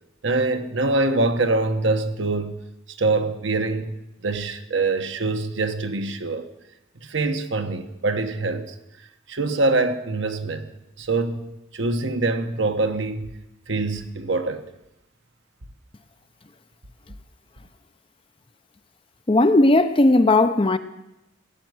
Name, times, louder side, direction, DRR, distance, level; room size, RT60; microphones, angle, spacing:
voice 1, 0.2-2.6 3.0-4.0 4.2-6.5 7.0-8.7 9.3-10.7 11.0-13.3 13.7-14.6, right 3 dB, 60° right, 1.1 m, -24 dB
voice 2, 19.3-20.8, left 2 dB, 25° left, 0.6 m, -16 dB
17.0 x 7.7 x 9.5 m
head